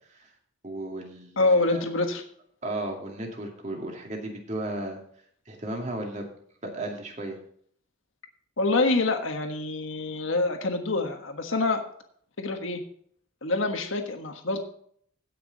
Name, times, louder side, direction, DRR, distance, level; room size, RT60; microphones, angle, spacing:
voice 1, 0.6-1.8 2.6-5.0 5.5-6.3 6.6-7.4, right 1 dB, 35° right, 1 dB, 2.4 m, -34 dB
voice 2, 1.4-2.2 8.6-11.8 12.4-12.8 13.4-14.6, left 2 dB, 85° left, 5 dB, 1.4 m, -26 dB
17.0 x 6.0 x 4.1 m, 0.63 s
head